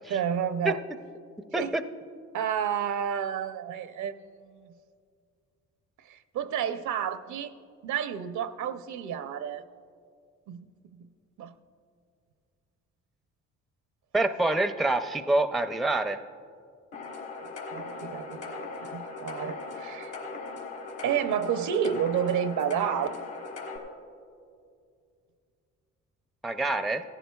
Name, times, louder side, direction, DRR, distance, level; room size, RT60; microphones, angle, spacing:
voice 1, 0.1-0.8 1.6-1.8 2.3-4.7 6.0-7.5 7.8-9.6 10.5-11.1 11.4-11.5 17.4-20.1 21.0-23.2, right 8 dB, 75° right, 11 dB, 0.6 m, -31 dB
voice 2, 14.1-16.2 26.4-27.0, right 2 dB, ahead, 10 dB, 0.4 m, -26 dB
sound 1, 16.9-23.8, left 3 dB, 90° left, 2.2 m, -39 dB
17.5 x 15.0 x 2.3 m, 2.3 s
cardioid pair, 90°, 30 cm